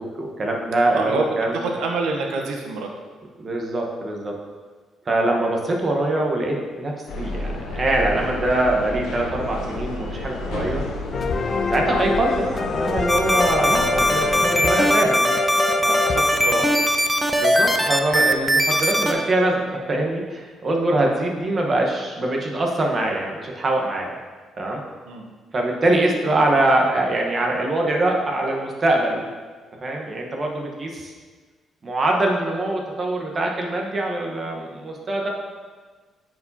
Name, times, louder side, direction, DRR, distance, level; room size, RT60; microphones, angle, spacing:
voice 1, 0.0-1.7 3.4-4.3 5.0-10.8 11.7-15.4 17.4-24.1 24.6-24.8 25.5-29.3 29.8-31.1 31.8-35.3, right 2 dB, 40° right, 0 dB, 1.1 m, -23 dB
voice 2, 1.6-2.9 15.8-16.7 25.1-25.2, right 3 dB, 90° right, 2 dB, 0.9 m, -27 dB
sound 1, 7.1-14.4, left 1 dB, 90° left, 1.1 m, -31 dB
sound 2, 11.1-17.0, left 4 dB, 40° left, 0.4 m, -26 dB
sound 3, 13.1-19.1, equal, ahead, 0.6 m, -19 dB
9.2 x 4.8 x 2.8 m, 1.4 s
cardioid pair, 90°, 0 cm